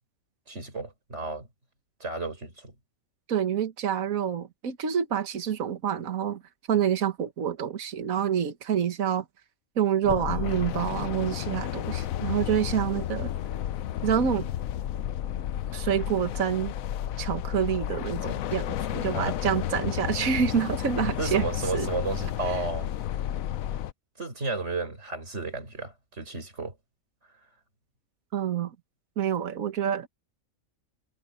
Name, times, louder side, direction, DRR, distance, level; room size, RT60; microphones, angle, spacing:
voice 1, 0.5-1.5 2.0-2.8 19.1-19.4 21.2-22.9 24.2-26.8, right 3 dB, 50° right, 5.3 m, -33 dB
voice 2, 3.3-6.4 6.7-9.2 9.8-13.3 14.0-14.5 15.7-16.7 17.2-21.4 21.7-21.9 28.3-28.7 29.2-30.1, right 8 dB, 70° right, 1.8 m, -27 dB
sound 1, 10.0-23.9, left 11 dB, 75° left, 1.1 m, -32 dB
omnidirectional pair, 1.5 m